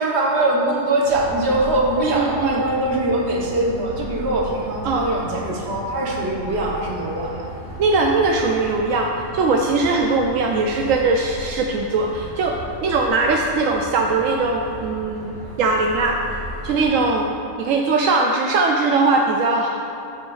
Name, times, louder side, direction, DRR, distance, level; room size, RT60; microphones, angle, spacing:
voice 1, 0.0-7.5, right 2 dB, 45° right, -1 dB, 1.2 m, -22 dB
sound 1, 1.0-17.1, equal, 90° right, 2.4 m, -36 dB
voice 2, 2.1-2.6 4.8-5.0 7.8-16.2 16.6-17.3 17.6-19.8, right 3 dB, 70° right, 1 dB, 0.8 m, -20 dB
7.4 x 5.9 x 4.7 m, 2.8 s
omnidirectional pair, 1.8 m